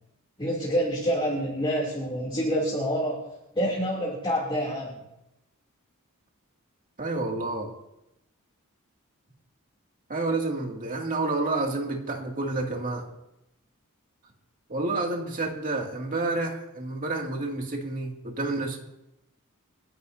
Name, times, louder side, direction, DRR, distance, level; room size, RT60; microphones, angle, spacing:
voice 1, 0.4-4.9, equal, 25° left, -6 dB, 2.9 m, -27 dB
voice 2, 7.0-7.7 10.1-13.0 14.7-18.8, right 2 dB, 40° right, 0 dB, 2.4 m, -29 dB
29.0 x 11.0 x 2.7 m, 0.86 s
head